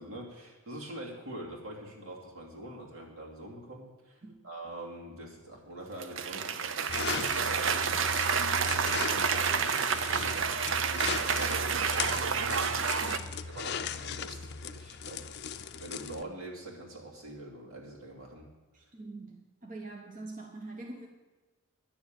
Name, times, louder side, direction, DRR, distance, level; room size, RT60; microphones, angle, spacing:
voice 1, 0.0-8.2 8.7-12.0 12.3-12.9 13.5-18.5, right 1 dB, 75° right, -2 dB, 2.9 m, -44 dB
Cheering / Applause, 6.0-13.2, right 6 dB, 60° right, 0.6 m, -29 dB
sound 1, 6.9-16.2, left 6 dB, 50° left, 0.5 m, -38 dB
voice 2, 13.0-13.4 18.7-21.1, right 2 dB, 40° right, 0 dB, 1.1 m, -44 dB
10.5 x 7.2 x 8.9 m, 1.2 s
head